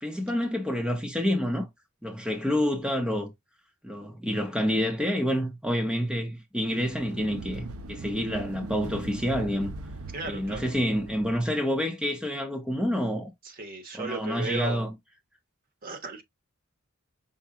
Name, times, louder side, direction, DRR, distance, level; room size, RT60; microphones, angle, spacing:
voice 1, 0.0-1.7 2.0-3.3 3.8-9.7 10.3-13.3 13.9-14.9, equal, 5° right, 0.8 m, -28 dB
sound 1, 6.6-11.5, right 3 dB, 90° right, 0.7 m, -40 dB
voice 2, 10.1-10.7 13.4-14.9 15.8-16.2, right 3 dB, 45° right, 1.2 m, -35 dB
5.6 x 2.3 x 3.7 m
head